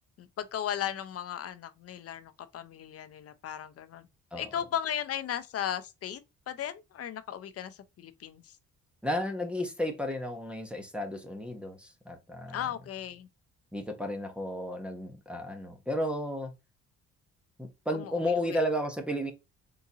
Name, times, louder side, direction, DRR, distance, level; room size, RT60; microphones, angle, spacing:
voice 1, 0.2-4.1 4.4-6.2 6.5-8.6 12.5-13.3 17.9-18.6, left 10 dB, 50° left, 0.5 m, -36 dB
voice 2, 9.0-12.6 13.7-16.5 17.6-19.3, left 1 dB, 5° right, 0.8 m, -33 dB
3.8 x 2.6 x 2.7 m
cardioid pair, 90°, 30 cm